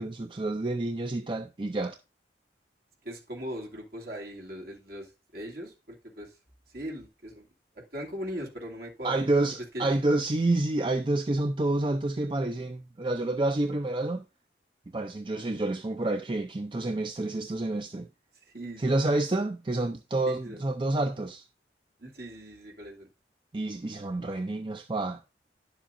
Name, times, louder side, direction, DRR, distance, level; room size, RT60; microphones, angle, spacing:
voice 1, 0.0-2.0 9.0-14.2 14.9-18.1 18.8-21.4 23.5-25.2, right 2 dB, 30° right, 0.5 m, -28 dB
voice 2, 3.0-6.3 6.7-7.5 7.7-9.2 9.7-9.9 18.4-19.0 20.3-20.6 22.0-23.1, equal, 55° right, 2.6 m, -39 dB
11.0 x 7.4 x 2.6 m
head